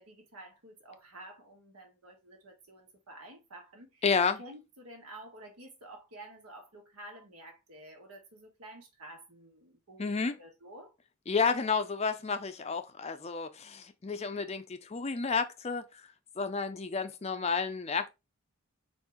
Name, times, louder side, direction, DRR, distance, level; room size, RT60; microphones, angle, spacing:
voice 1, 0.0-4.0 4.4-10.9, right 1 dB, 85° right, 1.5 m, -50 dB
voice 2, 4.0-4.4 10.0-10.3 11.3-15.8 16.4-18.1, left 5 dB, 30° left, 0.4 m, -31 dB
4.5 x 2.8 x 3.5 m
head